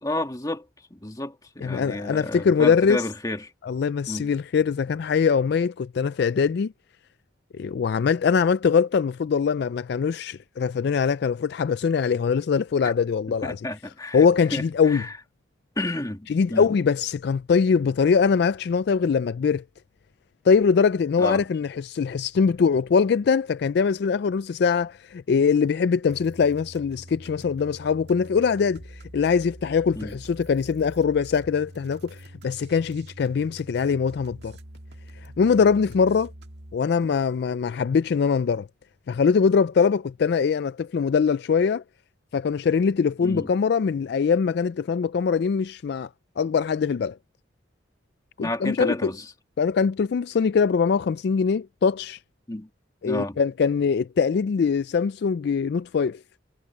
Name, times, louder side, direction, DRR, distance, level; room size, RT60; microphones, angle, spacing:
voice 1, 0.0-0.6 0.9-3.5 4.1-4.3 13.4-14.2 14.5-14.6 14.9-15.1 15.8-16.7 21.2-21.4 30.0-30.2 43.2-43.5 48.4-49.3 52.5-52.7 53.1-53.4, left 1 dB, 20° left, 1.8 m, -30 dB
voice 2, 1.6-3.0 3.6-6.7 7.5-13.6 14.1-15.1 16.3-19.6 20.5-28.8 29.1-34.5 35.4-36.3 36.7-38.7 39.1-41.8 42.3-46.1 46.4-47.2 48.4-48.9 49.6-52.2 53.0-56.2, left 6 dB, 55° left, 0.3 m, -22 dB
sound 1, 26.1-36.8, right 1 dB, 60° right, 2.2 m, -45 dB
head